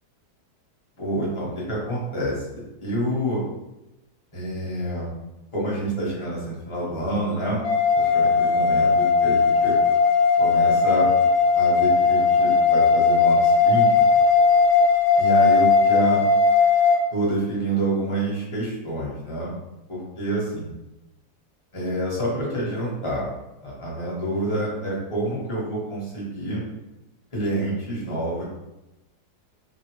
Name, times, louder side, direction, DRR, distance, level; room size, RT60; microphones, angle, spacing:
voice 1, 1.0-3.4 4.3-5.1 5.5-7.6 8.0-9.7 10.4-11.1 11.5-14.0 15.2-16.2 17.1-19.5 19.9-20.7 21.7-23.2 23.6-26.6 27.3-28.4, right 1 dB, 25° left, -6 dB, 0.7 m, -27 dB
sound 1, 7.6-17.0, left 5 dB, 70° left, 0.9 m, -18 dB
3.2 x 2.1 x 2.9 m, 0.96 s
omnidirectional pair, 1.7 m